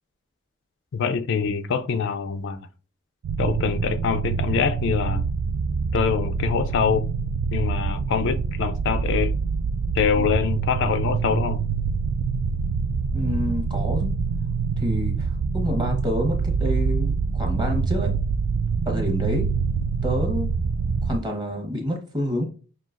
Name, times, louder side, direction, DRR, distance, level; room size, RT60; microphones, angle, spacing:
voice 1, 0.9-2.6 3.4-5.2 5.9-7.0 7.5-9.3 9.9-11.6, left 6 dB, 60° left, 0.4 m, -24 dB
sound 1, 3.2-21.2, right 5 dB, 85° right, 0.3 m, -25 dB
voice 2, 13.1-14.1 14.8-18.1 18.8-19.5 20.0-20.5 21.0-22.4, equal, 20° right, 1.0 m, -28 dB
5.5 x 2.7 x 2.4 m
head